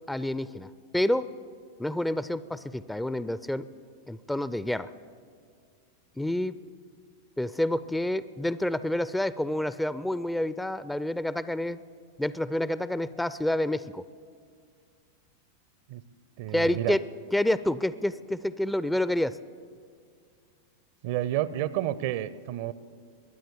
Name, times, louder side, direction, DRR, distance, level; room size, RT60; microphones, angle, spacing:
voice 1, 0.1-1.3 1.8-3.6 4.1-4.9 6.2-6.6 7.4-11.8 12.2-14.0 16.5-17.0 17.3-19.4, left 1 dB, 5° left, 15 dB, 0.4 m, -28 dB
voice 2, 16.4-17.0 21.0-22.7, right 13 dB, 50° right, 18 dB, 0.5 m, -30 dB
22.5 x 9.1 x 6.9 m, 2.1 s
figure-of-eight pair, 90°, 0 cm